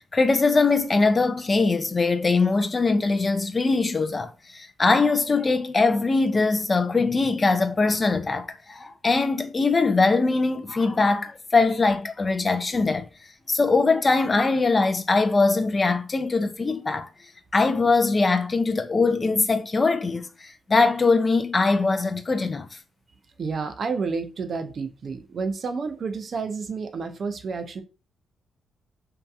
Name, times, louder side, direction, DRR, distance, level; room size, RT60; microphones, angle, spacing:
voice 1, 0.0-13.1 13.5-17.1 17.5-22.7, left 3 dB, 35° left, 0.4 m, -22 dB
voice 2, 23.4-27.8, right 4 dB, 60° right, 0.4 m, -30 dB
2.7 x 2.2 x 2.2 m
supercardioid pair, 45°, 0 cm